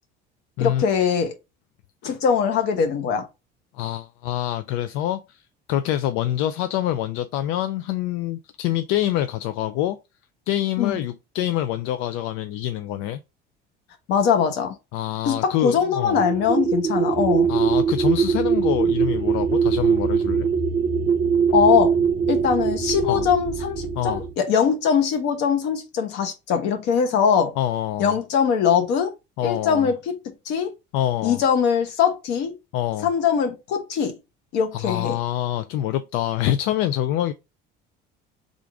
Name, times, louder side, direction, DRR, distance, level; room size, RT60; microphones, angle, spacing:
voice 1, 0.6-1.3 2.0-3.3 10.8-11.0 14.1-14.7 15.2-17.5 21.5-21.9 22.3-27.5 28.0-29.1 29.4-30.2 30.5-30.7 31.2-32.5 33.0-34.2 34.5-35.2, left 7 dB, 60° left, 1.0 m, -21 dB
voice 2, 3.7-5.4 5.7-10.0 10.5-13.2 14.9-16.2 17.5-20.5 23.0-23.3 24.0-24.2 27.6-28.2 29.4-29.9 30.9-31.4 32.7-33.1 34.7-37.3, left 12 dB, 75° left, 0.4 m, -26 dB
sound 1, 16.0-24.3, right 6 dB, 20° right, 0.5 m, -22 dB
3.6 x 2.5 x 4.6 m
cardioid pair, 175°, 20 cm